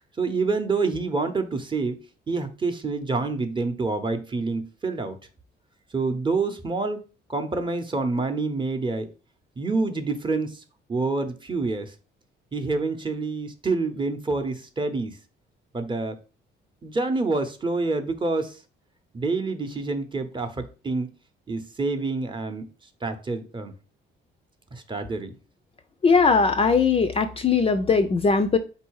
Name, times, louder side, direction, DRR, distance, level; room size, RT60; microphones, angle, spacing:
voice 1, 0.2-2.0 2.3-5.2 5.9-7.0 7.3-9.1 9.6-10.6 10.9-11.9 12.5-15.2 15.7-16.2 16.8-18.6 19.1-21.1 21.5-22.7 23.0-23.7 24.7-25.3, right 3 dB, 25° right, 0.7 m, -27 dB
voice 2, 26.0-28.6, left 5 dB, 30° left, 0.4 m, -20 dB
3.9 x 2.6 x 4.6 m
cardioid pair, 90°, 20 cm